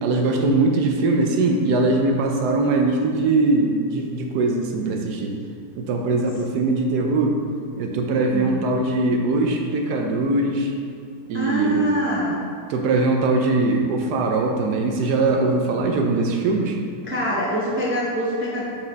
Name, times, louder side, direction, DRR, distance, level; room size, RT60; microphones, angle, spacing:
voice 1, 0.0-5.4 5.8-7.4 7.8-10.7 11.3-11.9 12.7-16.8, right 2 dB, 75° right, 2 dB, 1.2 m, -21 dB
voice 2, 11.3-12.4 17.0-18.6, equal, 15° right, -7 dB, 0.5 m, -24 dB
5.2 x 5.1 x 3.9 m, 2.3 s
omnidirectional pair, 1.8 m